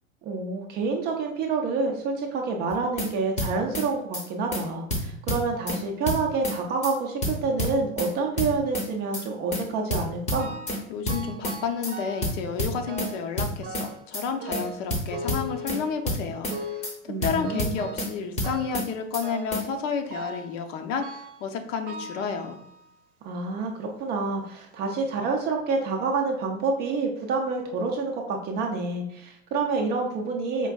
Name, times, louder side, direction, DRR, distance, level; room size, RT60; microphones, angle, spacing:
voice 1, 0.2-10.5 17.1-17.8 23.2-30.7, right 4 dB, 25° right, 2 dB, 0.4 m, -28 dB
sound 1, 2.7-3.1 3.4-3.9 4.1-4.3 4.5-4.6 4.9-5.8 6.1-6.6 6.8-6.9 7.2-8.1 8.4-8.9 9.1-9.3 9.5-9.6 9.9-10.8 11.1-11.6 11.8-11.9 12.2-13.1 13.4-13.9 14.1-14.3 14.5-14.6 14.9-15.8 16.1-16.6 16.8-16.9 17.2-18.1 18.4-18.9 19.1-19.3 19.5-19.6, left 1 dB, 15° left, 0.7 m, -28 dB
sound 2, 10.4-10.8 11.1-12.4 12.9-13.3 13.6-14.1 14.4-16.1 16.5-17.0 17.4-18.1 18.4-18.9 19.2-19.6 20.1-20.6 21.0-21.5 21.9-22.9 23.6-23.7 24.5-24.6 25.0-25.1, right 1 dB, 60° right, 0.7 m, -39 dB
voice 2, 10.9-22.6, left 6 dB, 65° left, 5 dB, 0.7 m, -31 dB
4.5 x 2.4 x 2.2 m, 0.77 s
hypercardioid pair, 100°, 41 cm